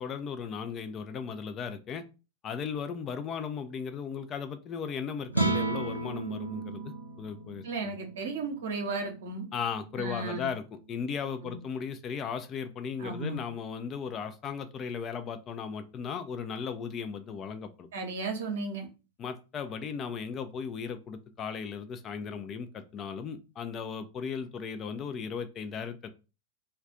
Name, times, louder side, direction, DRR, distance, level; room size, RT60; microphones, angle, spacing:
voice 1, 0.0-2.0 2.4-8.0 9.5-17.9 19.2-26.1, left 6 dB, 30° left, 8 dB, 0.4 m, -36 dB
sound 1, 5.3-11.7, right 3 dB, 85° right, 0.4 m, -35 dB
voice 2, 7.6-9.5 10.0-10.5 11.4-11.6 13.0-13.4 17.9-18.9, right 3 dB, 60° right, 3 dB, 0.8 m, -34 dB
2.4 x 2.2 x 3.7 m, 0.30 s
figure-of-eight pair, 90°, 0 cm